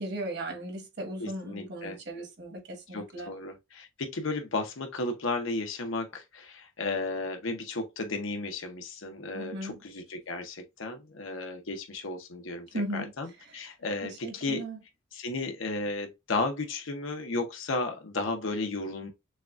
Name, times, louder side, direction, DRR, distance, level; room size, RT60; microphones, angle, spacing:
voice 1, 0.0-3.3 9.3-9.8 12.7-13.1 13.5-13.6 14.0-14.8, right 1 dB, 55° right, 1.4 m, -37 dB
voice 2, 1.2-2.0 2.9-14.6 15.1-19.1, left 3 dB, 70° left, 0.8 m, -34 dB
6.4 x 2.3 x 2.4 m
head